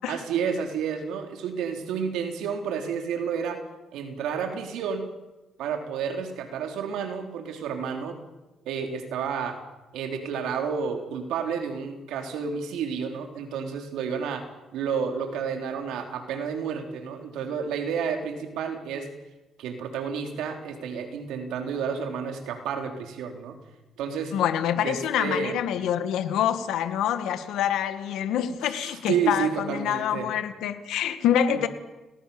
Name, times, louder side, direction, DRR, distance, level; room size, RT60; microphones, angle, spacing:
voice 1, 0.1-3.6 3.9-5.0 5.6-8.2 8.7-9.6 9.9-14.4 14.7-19.1 19.6-23.6 24.0-24.3 24.8-25.6 28.7-30.3 31.5-31.7, right 6 dB, 90° right, 4 dB, 3.7 m, -30 dB
voice 2, 24.3-31.7, left 10 dB, 85° left, 9 dB, 2.0 m, -26 dB
29.0 x 19.5 x 7.2 m, 1.1 s
cardioid pair, 100°, 0 cm